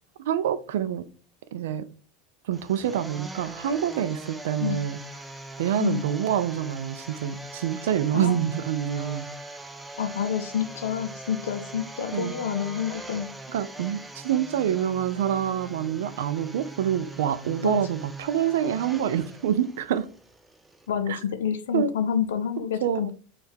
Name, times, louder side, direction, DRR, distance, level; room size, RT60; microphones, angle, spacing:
voice 1, 0.2-1.1 1.5-1.9 2.4-5.0 5.6-9.3 12.1-12.4 13.5-20.1 21.1-21.2 21.7-21.9 22.8-23.1, right 9 dB, 80° right, 0.3 m, -26 dB
sound 1, 2.5-20.9, right 2 dB, 10° right, 0.4 m, -42 dB
voice 2, 10.0-13.3 17.6-17.8 20.9-23.1, left 8 dB, 90° left, 0.4 m, -28 dB
2.6 x 2.3 x 3.5 m
hypercardioid pair, 105°, 0 cm